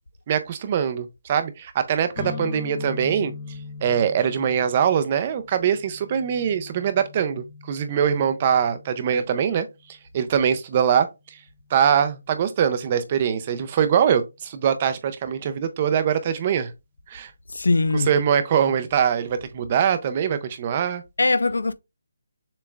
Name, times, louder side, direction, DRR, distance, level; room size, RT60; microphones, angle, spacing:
voice 1, 0.3-3.3 3.8-9.7 10.1-11.4 11.7-16.7 17.1-17.3 17.9-21.0, right 8 dB, 20° right, 0.4 m, -23 dB
sound 1, 2.1-9.8, left 4 dB, 25° left, 0.7 m, -39 dB
voice 2, 17.5-18.1 21.2-21.7, left 3 dB, 85° left, 0.5 m, -21 dB
6.9 x 3.2 x 2.3 m
hypercardioid pair, 180°, 0 cm